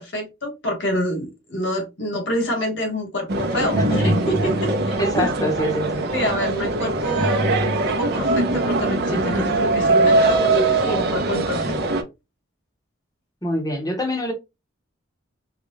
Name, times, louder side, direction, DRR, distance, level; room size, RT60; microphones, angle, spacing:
voice 1, 0.0-3.8 4.3-5.3 6.1-11.8, equal, 65° left, 1.5 m, -27 dB
sound 1, 3.3-12.0, right 2 dB, 55° right, 0.7 m, -21 dB
voice 2, 3.8-4.1 5.0-6.0 13.4-14.3, equal, 20° left, 0.9 m, -24 dB
3.9 x 2.3 x 3.1 m
head